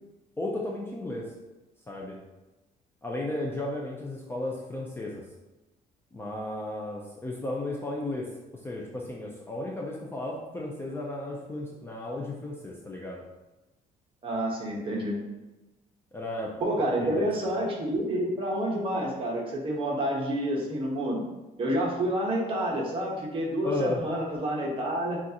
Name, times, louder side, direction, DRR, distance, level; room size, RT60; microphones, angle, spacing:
voice 1, 0.4-1.3 1.9-2.2 3.0-5.2 6.1-8.3 8.6-13.2 16.1-16.5 17.0-17.3 23.6-24.0, left 1 dB, 15° left, -2 dB, 0.5 m, -34 dB
voice 2, 14.2-15.2 16.6-21.2 21.6-25.2, right 1 dB, 35° right, -3 dB, 1.2 m, -29 dB
6.2 x 2.5 x 2.9 m, 1.1 s
cardioid pair, 130°, 16 cm